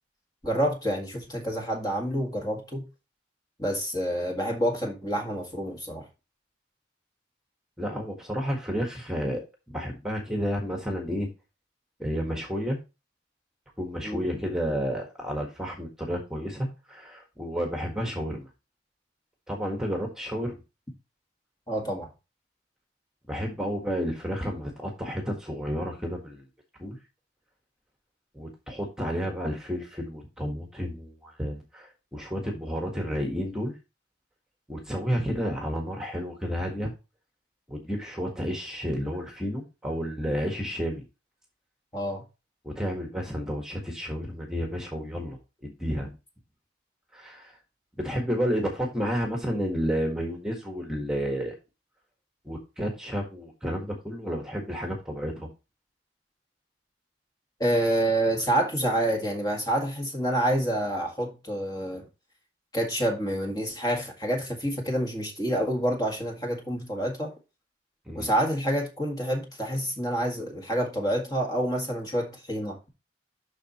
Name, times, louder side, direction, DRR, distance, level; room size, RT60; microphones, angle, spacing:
voice 1, 0.4-2.9 3.6-6.1 14.0-14.2 21.7-22.1 41.9-42.2 57.6-62.0 62.7-67.3 68.2-72.8, right 1 dB, 20° left, 1.8 m, -28 dB
voice 2, 7.8-11.3 12.0-12.8 13.8-18.5 19.5-20.6 23.3-26.4 26.8-27.0 28.3-33.7 34.7-36.9 37.7-41.0 42.6-46.1 47.1-47.6 48.0-51.5 52.5-55.5 68.1-68.3, equal, 5° right, 1.6 m, -31 dB
12.5 x 4.1 x 3.0 m
head